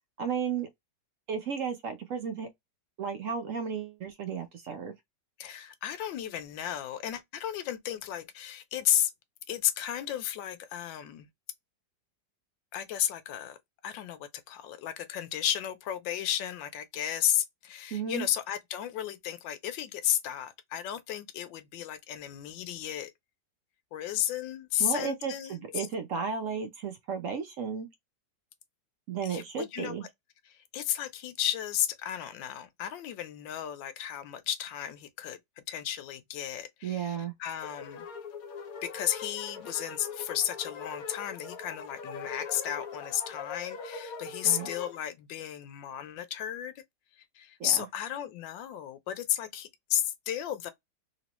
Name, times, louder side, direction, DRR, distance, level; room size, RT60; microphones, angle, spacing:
voice 1, 0.2-0.7 1.3-2.5 3.0-4.9 17.9-18.3 24.8-27.9 29.1-30.0 36.8-37.3 44.4-44.7 47.6-47.9, right 6 dB, 70° right, 0.7 m, -34 dB
voice 2, 5.4-9.1 9.5-11.3 12.7-13.6 13.8-23.1 23.9-25.9 29.2-30.0 30.5-35.4 35.7-38.1 38.8-46.7 47.2-50.7, left 11 dB, 80° left, 1.3 m, -33 dB
sound 1, 37.6-45.0, left 5 dB, 60° left, 1.1 m, -41 dB
3.1 x 3.0 x 2.9 m
omnidirectional pair, 2.0 m